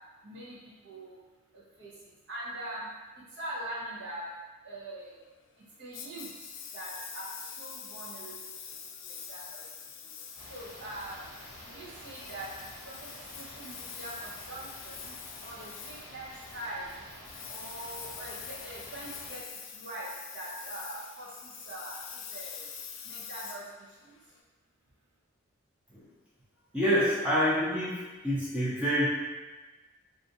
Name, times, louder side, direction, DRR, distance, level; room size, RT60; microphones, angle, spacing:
voice 1, 0.2-1.2 1.5-2.9 3.1-4.3 4.6-5.2 5.6-8.5 9.0-10.1 10.5-11.3 11.6-12.5 12.8-15.1 15.4-16.9 17.5-22.7 23.0-24.1, right 1 dB, 55° right, -6 dB, 0.7 m, -43 dB
Engine, 5.9-24.4, left 7 dB, 65° left, 0.4 m, -45 dB
sound 1, 10.3-19.4, equal, 90° right, 1.5 m, -49 dB
voice 2, 26.7-29.1, equal, 5° right, -8 dB, 0.5 m, -27 dB
2.5 x 2.4 x 4.0 m, 1.2 s
head